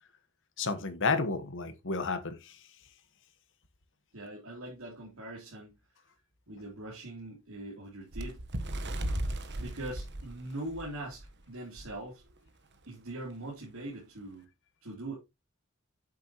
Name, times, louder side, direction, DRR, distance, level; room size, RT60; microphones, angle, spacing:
voice 1, 0.6-2.6, left 4 dB, 60° left, 1.4 m, -31 dB
voice 2, 4.1-5.8 6.5-8.4 9.6-12.2 12.9-14.5 14.8-15.1, right 1 dB, 70° right, 3.2 m, -42 dB
Bird, 8.1-11.3 11.8-11.9 12.2-12.5 13.2-13.3, right 1 dB, 55° right, 1.2 m, -36 dB
8.6 x 7.5 x 3.0 m
head